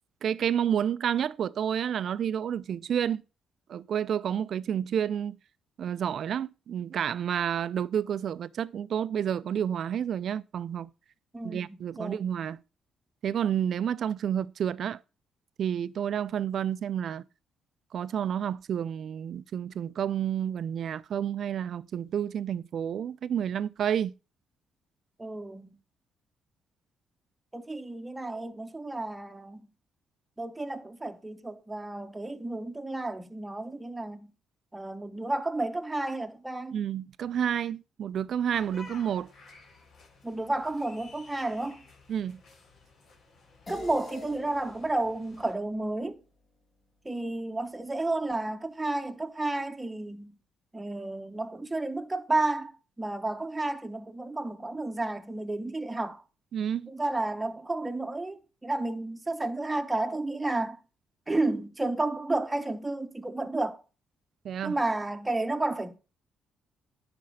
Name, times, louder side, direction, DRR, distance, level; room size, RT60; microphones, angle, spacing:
voice 1, 0.2-3.2 3.7-5.4 5.8-10.9 11.4-12.6 13.2-15.0 15.6-17.2 17.9-24.1 36.7-39.3 42.1-42.4 56.5-56.9 64.4-64.7, right 9 dB, 60° right, 0.5 m, -30 dB
voice 2, 11.3-12.3 25.2-25.8 27.5-29.6 30.4-34.3 34.7-36.8 40.2-41.8 43.7-46.2 47.0-50.4 50.7-56.2 56.9-60.8 61.3-63.8 64.6-66.0, right 2 dB, 15° right, 1.0 m, -32 dB
sound 1, 38.5-45.5, left 3 dB, 65° left, 4.1 m, -53 dB
sound 2, 43.7-48.4, left 3 dB, 40° left, 3.2 m, -49 dB
10.5 x 4.4 x 6.4 m
cardioid pair, 90°, 0 cm